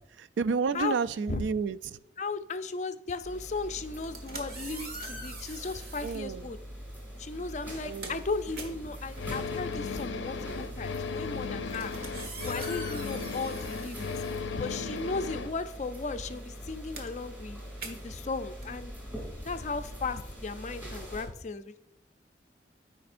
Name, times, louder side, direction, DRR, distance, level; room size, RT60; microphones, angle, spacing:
voice 1, 0.2-2.0 6.0-6.5 7.8-8.2, right 5 dB, 85° right, 15 dB, 0.3 m, -30 dB
voice 2, 2.2-6.6 7.2-11.9 12.4-14.1 14.6-18.9 19.4-21.8, left 3 dB, 40° left, 10 dB, 0.4 m, -36 dB
sound 1, 3.2-21.2, equal, 10° right, 2.4 m, -43 dB
sound 2, 3.9-6.3 7.1-7.3 7.7-15.2 15.5-20.1, right 2 dB, 55° right, 1.3 m, -45 dB
sound 3, 9.2-15.5, left 5 dB, 90° left, 0.5 m, -36 dB
13.5 x 5.1 x 2.5 m, 0.81 s
head